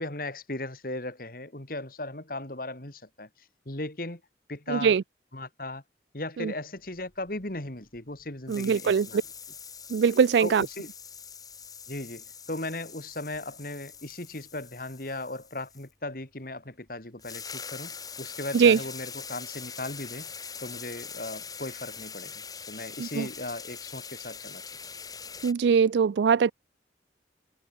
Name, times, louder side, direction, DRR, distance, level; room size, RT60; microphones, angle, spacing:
voice 1, 0.0-3.3 3.7-4.2 4.5-4.9 5.3-5.8 6.1-9.2 10.4-10.9 11.9-20.3 20.6-22.3 22.7-24.8, left 2 dB, 50° left, 2.5 m, -37 dB
voice 2, 4.7-5.0 6.4-6.5 8.5-9.2 9.9-10.7 18.5-18.8 23.0-23.3 25.4-26.5, right 6 dB, 75° right, 0.3 m, -22 dB
sound 1, 7.0-8.2 8.5-15.9 16.9-17.0 17.2-25.5, left 6 dB, 20° left, 4.8 m, -43 dB
head